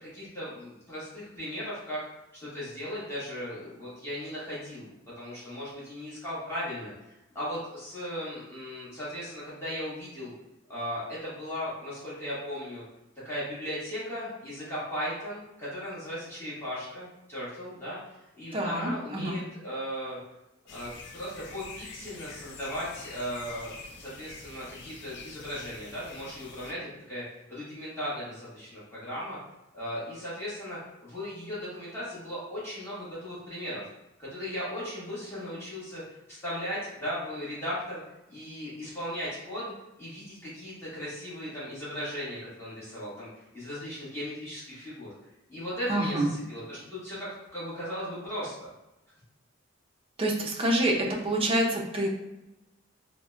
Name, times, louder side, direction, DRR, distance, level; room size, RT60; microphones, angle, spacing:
voice 1, 0.0-2.0 2.3-4.9 5.2-10.3 10.7-12.8 13.2-20.2 20.7-23.7 24.0-29.4 29.7-33.8 34.2-38.0 38.3-39.7 40.0-43.3 43.5-45.1 45.5-47.2 47.5-48.5, equal, 15° left, -10 dB, 1.2 m, -37 dB
voice 2, 18.5-19.4 45.9-46.3 50.2-52.1, right 1 dB, 25° right, -1 dB, 0.5 m, -27 dB
sound 1, 20.7-26.7, left 4 dB, 55° left, 0.4 m, -46 dB
3.8 x 2.1 x 2.4 m, 0.97 s
head